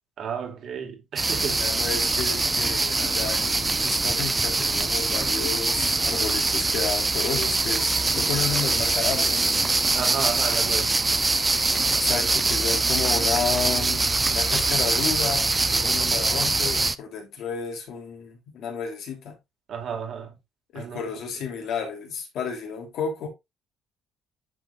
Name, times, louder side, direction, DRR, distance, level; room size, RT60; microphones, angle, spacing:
voice 1, 0.2-1.6 9.9-11.0 19.7-20.4 20.7-21.1, right 7 dB, 50° right, 2.0 m, -32 dB
sound 1, 1.2-16.9, right 3 dB, 15° right, 0.5 m, -23 dB
voice 2, 1.4-9.5 11.9-19.4 20.7-23.3, left 6 dB, 65° left, 3.3 m, -32 dB
sound 2, 8.0-10.9, left 2 dB, 30° left, 3.2 m, -43 dB
10.0 x 5.8 x 2.5 m
cardioid pair, 150°, 0 cm